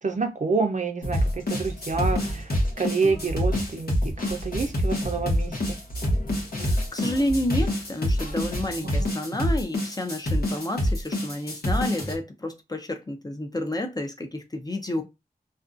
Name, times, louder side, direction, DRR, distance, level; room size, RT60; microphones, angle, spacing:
voice 1, 0.0-5.6 8.8-9.1, right 4 dB, 50° right, 0.5 m, -28 dB
sound 1, 1.0-9.0, equal, 65° left, 0.7 m, -35 dB
sound 2, 1.1-12.2, left 1 dB, 90° left, 1.0 m, -26 dB
voice 2, 6.6-15.0, left 1 dB, 25° left, 0.5 m, -30 dB
2.5 x 2.2 x 2.4 m
wide cardioid pair, 70°, 16 cm